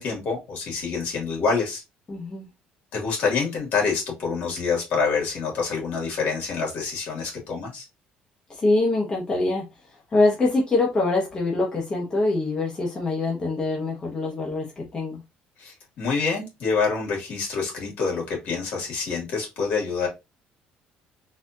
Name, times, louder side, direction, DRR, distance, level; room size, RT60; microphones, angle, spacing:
voice 1, 0.0-1.8 2.9-7.9 15.6-20.1, left 5 dB, 65° left, 2.1 m, -26 dB
voice 2, 2.1-2.5 8.5-9.7 10.1-15.2, left 2 dB, 25° left, 1.0 m, -24 dB
4.1 x 2.5 x 2.6 m
cardioid pair, 125°, 3 cm